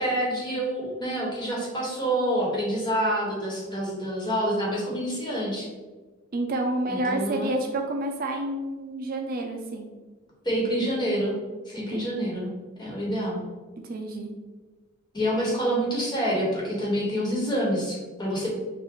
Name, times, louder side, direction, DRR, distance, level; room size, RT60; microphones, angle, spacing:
voice 1, 0.0-5.7 6.9-7.5 10.4-11.3 11.6-12.5 12.8-13.4 15.1-18.5, equal, 20° left, -4 dB, 1.4 m, -27 dB
voice 2, 6.3-9.9 11.9-12.0 13.9-14.3, right 2 dB, 45° right, 3 dB, 0.4 m, -29 dB
6.0 x 2.5 x 3.0 m, 1.3 s
head